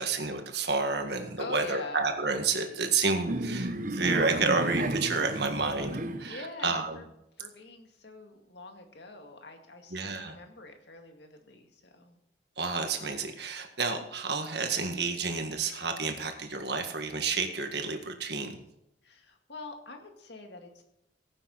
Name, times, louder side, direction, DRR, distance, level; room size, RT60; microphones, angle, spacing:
voice 1, 0.0-7.0 9.9-10.4 12.6-18.6, right 4 dB, 60° right, 5 dB, 1.7 m, -30 dB
voice 2, 1.4-2.0 6.3-7.1 7.4-12.2 19.0-20.8, left 2 dB, 65° left, 4 dB, 2.1 m, -44 dB
sound 1, 3.3-6.3, right 1 dB, 45° right, 1.0 m, -32 dB
16.5 x 8.9 x 4.1 m, 0.85 s
head